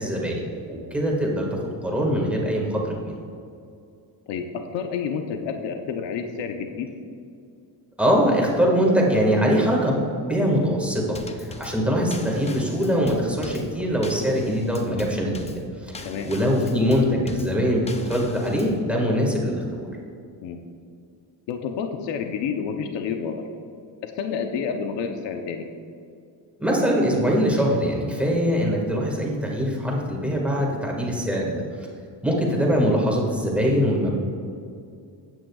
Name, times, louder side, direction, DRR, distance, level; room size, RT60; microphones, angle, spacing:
voice 1, 0.0-1.5 1.8-3.1 8.0-10.0 10.3-15.5 15.8-19.9 26.6-31.6 32.2-34.2, equal, 5° right, -2 dB, 1.7 m, -22 dB
voice 2, 4.3-6.9 16.0-16.3 20.4-20.7 21.5-23.4 24.0-25.7, left 6 dB, 70° left, 5 dB, 0.9 m, -29 dB
Drum kit / Snare drum / Bass drum, 11.1-18.8, left 3 dB, 15° left, 0.4 m, -40 dB
15.0 x 9.1 x 2.4 m, 2.4 s
cardioid pair, 145°, 45 cm